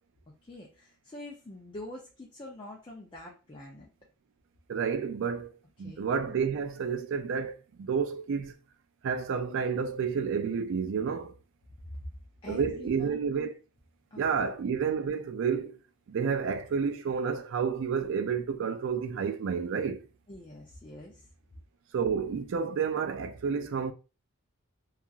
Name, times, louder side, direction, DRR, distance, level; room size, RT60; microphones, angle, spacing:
voice 1, 0.4-3.9 5.8-6.1 11.9-12.1 12.4-13.2 14.1-14.2 20.3-21.3, left 1 dB, 20° left, 0.5 m, -45 dB
voice 2, 4.7-5.5 5.8-8.5 9.0-11.3 12.5-13.5 14.2-15.8 16.1-20.1 21.9-23.9, right 6 dB, 60° right, 0.3 m, -30 dB
2.8 x 2.4 x 2.4 m
head